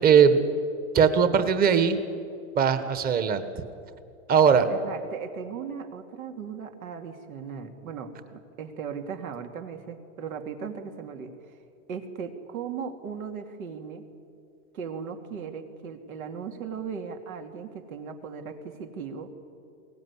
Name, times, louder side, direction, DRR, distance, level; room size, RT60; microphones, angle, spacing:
voice 1, 0.0-0.4 0.9-2.0 2.6-3.4 4.3-4.7, right 7 dB, 20° right, 10 dB, 1.4 m, -19 dB
voice 2, 4.7-11.3 11.9-14.0 14.7-19.3, right 6 dB, 80° right, 6 dB, 3.0 m, -37 dB
22.0 x 18.5 x 9.9 m, 2.5 s
supercardioid pair, 145°, 41 cm